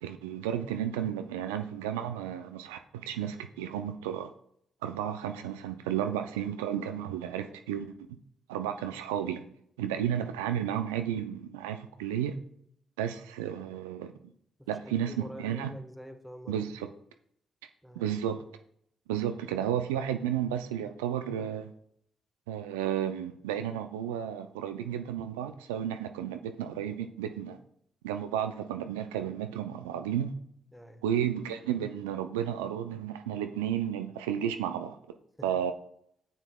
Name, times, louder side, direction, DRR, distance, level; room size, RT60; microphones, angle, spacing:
voice 1, 0.0-4.3 4.8-7.9 8.5-9.5 9.8-12.4 13.0-14.1 14.7-15.7 16.5-16.9 18.0-18.4 19.1-21.7 22.5-27.6 28.0-30.3 31.0-35.0 35.4-35.7, right 10 dB, 85° right, 0.3 m, -32 dB
voice 2, 14.6-16.6 17.8-18.1 30.7-31.0 35.4-35.7, equal, 5° left, 1.2 m, -47 dB
9.1 x 7.1 x 2.3 m
hypercardioid pair, 45°, 0 cm